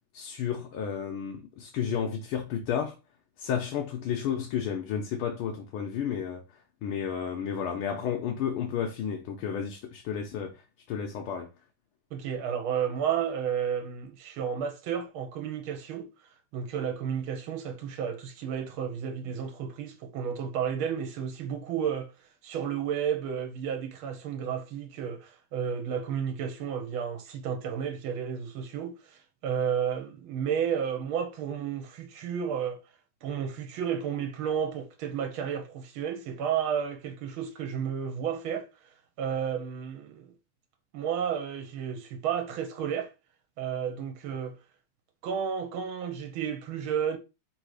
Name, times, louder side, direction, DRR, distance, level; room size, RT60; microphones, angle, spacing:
voice 1, 0.1-3.0 3.4-6.4 6.8-10.6 10.9-11.5, left 8 dB, 80° left, 1.6 m, -32 dB
voice 2, 12.1-16.1 16.5-22.1 22.4-32.8 33.2-38.7 39.2-40.3 40.9-43.1 43.6-44.5 45.2-47.2, right 8 dB, 75° right, 1.7 m, -32 dB
4.0 x 2.7 x 4.8 m
omnidirectional pair, 2.4 m